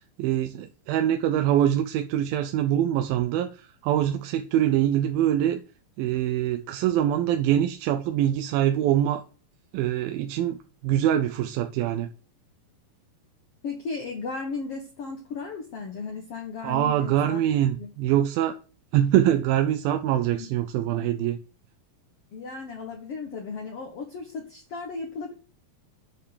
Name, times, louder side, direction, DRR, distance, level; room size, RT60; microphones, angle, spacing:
voice 1, 0.2-5.6 6.0-9.2 9.7-10.6 10.8-12.1 16.6-18.6 18.9-21.4, right 11 dB, 90° right, 2.6 m, -24 dB
voice 2, 13.6-17.4 17.8-17.9 20.4-20.5 22.3-25.3, left 4 dB, 50° left, 2.1 m, -35 dB
9.3 x 5.8 x 6.5 m
omnidirectional pair, 4.1 m